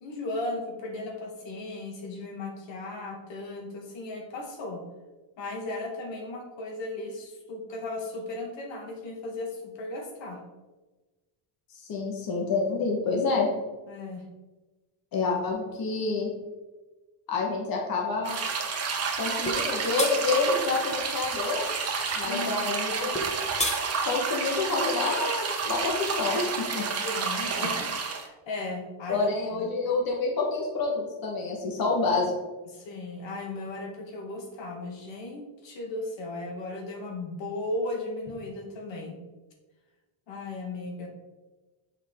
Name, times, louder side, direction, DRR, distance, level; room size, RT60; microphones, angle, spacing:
voice 1, 0.0-4.8 5.4-10.4 12.9-13.0 13.9-14.2 22.2-22.7 27.0-29.7 32.7-39.2 40.3-41.1, left 2 dB, 70° left, 2 dB, 1.6 m, -36 dB
voice 2, 11.7-13.5 15.1-16.3 17.3-18.4 19.2-21.7 22.1-23.2 24.0-26.9 29.1-32.3, left 3 dB, 50° left, -1 dB, 1.3 m, -28 dB
sound 1, 18.2-28.3, right 5 dB, 35° right, 0.9 m, -30 dB
sound 2, 19.5-19.6 20.0-20.1 23.1-23.8, left 1 dB, 15° left, 0.8 m, -29 dB
6.6 x 4.9 x 3.6 m, 1.2 s
cardioid pair, 125°, 46 cm